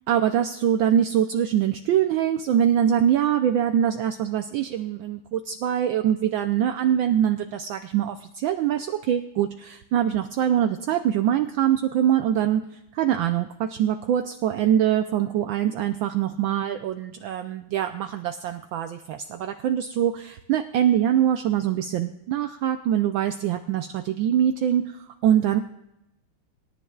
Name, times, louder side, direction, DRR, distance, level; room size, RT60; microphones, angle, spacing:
voice 1, 0.1-25.6, right 10 dB, 70° right, 7 dB, 1.3 m, -23 dB
24.0 x 11.0 x 2.3 m, 0.89 s
omnidirectional pair, 2.4 m